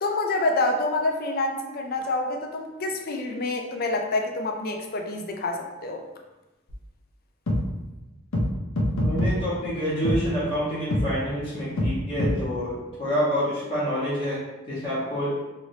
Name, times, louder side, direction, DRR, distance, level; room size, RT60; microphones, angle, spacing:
voice 1, 0.0-6.1, left 2 dB, 50° left, 3 dB, 0.4 m, -27 dB
sound 1, 6.7-6.8 7.5-7.6 8.3-8.5 8.8-9.3 10.0-10.2 10.9-11.0 11.8-11.9 12.2-12.3, left 1 dB, 80° left, 0.7 m, -23 dB
voice 2, 8.9-14.4 14.7-15.3, equal, 25° left, -11 dB, 1.0 m, -27 dB
3.1 x 3.0 x 2.7 m, 1.1 s
head